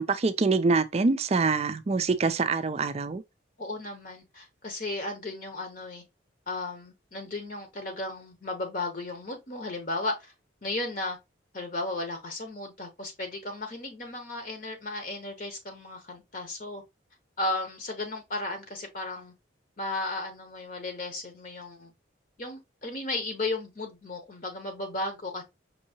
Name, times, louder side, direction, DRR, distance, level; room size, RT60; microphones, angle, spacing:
voice 1, 0.0-3.2, right 4 dB, 30° right, 0.4 m, -25 dB
voice 2, 3.6-6.0 6.5-10.3 10.6-11.2 11.5-16.8 17.4-19.3 19.8-21.9 22.4-25.4, left 2 dB, 45° left, 0.8 m, -35 dB
5.3 x 2.7 x 2.8 m
head